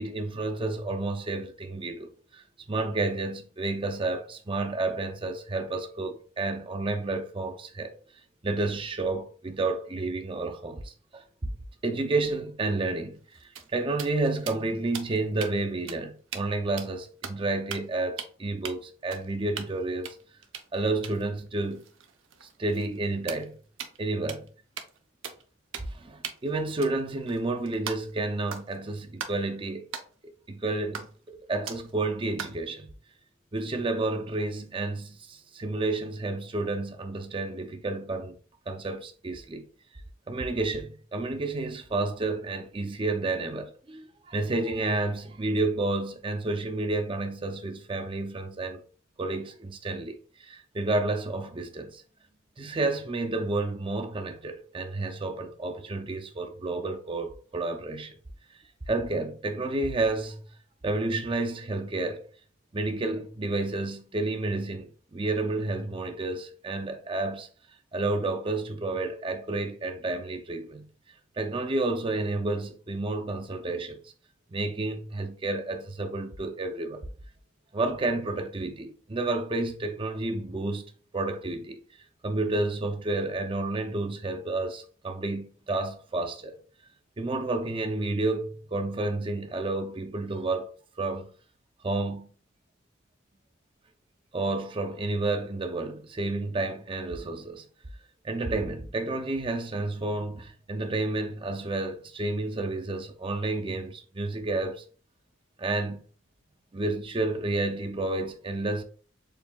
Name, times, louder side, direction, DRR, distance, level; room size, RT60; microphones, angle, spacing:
voice 1, 0.0-7.9 8.4-11.5 11.8-20.2 20.7-21.8 22.4-23.6 24.0-24.5 25.9-29.9 30.2-31.1 31.3-32.9 33.5-38.4 38.7-39.7 40.3-48.8 49.2-52.0 52.6-58.2 58.9-60.5 60.8-62.3 62.7-67.5 67.9-70.9 71.4-74.1 74.5-77.0 77.7-80.8 81.1-81.8 82.2-86.6 87.2-90.7 91.0-91.3 91.8-92.3 94.3-97.6 98.2-104.8 105.6-106.0 106.7-108.8, right 2 dB, 25° right, 0.5 m, -30 dB
sound 1, 13.2-15.5 15.9-16.0 16.3-16.5 16.8-17.4 17.7-17.9 18.2-18.3 18.6-18.7 19.1-19.8 20.0-24.0 24.3-24.5 24.8-25.0 25.2-25.4 25.7-26.0 26.2-28.2 28.5-28.8 29.2-29.4 29.9-30.1 30.9-31.3 31.7-31.9 32.4-32.6, right 7 dB, 85° right, 0.7 m, -40 dB
7.0 x 2.7 x 2.3 m
head